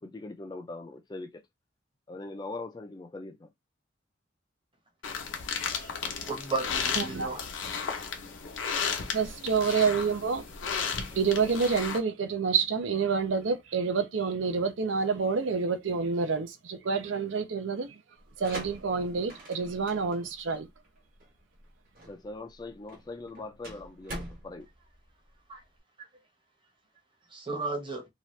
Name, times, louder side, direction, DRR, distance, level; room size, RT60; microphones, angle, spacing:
voice 1, 0.0-1.4 2.1-3.5 22.1-24.7, left 2 dB, 20° left, 0.3 m, -41 dB
sound 1, 5.0-12.0, left 6 dB, 80° left, 0.8 m, -34 dB
voice 2, 6.2-7.4 25.5-25.6 27.3-28.0, right 3 dB, 25° right, 0.9 m, -34 dB
voice 3, 7.0-7.4 9.1-10.5 10.9-18.0 18.4-20.7, right 5 dB, 80° right, 0.5 m, -28 dB
sound 2, 18.2-25.8, right 1 dB, 50° right, 1.0 m, -45 dB
2.8 x 2.4 x 3.1 m
head